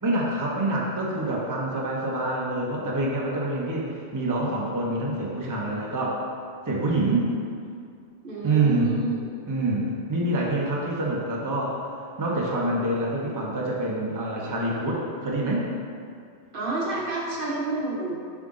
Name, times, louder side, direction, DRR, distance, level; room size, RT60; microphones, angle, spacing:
voice 1, 0.0-6.2 6.7-7.3 8.4-9.0 9.5-9.8 10.1-11.8 12.2-15.6, right 2 dB, 20° right, -3 dB, 0.7 m, -26 dB
voice 2, 8.2-9.3 16.5-18.2, right 3 dB, 55° right, -3 dB, 0.9 m, -28 dB
7.5 x 3.7 x 3.7 m, 2.3 s
omnidirectional pair, 1.2 m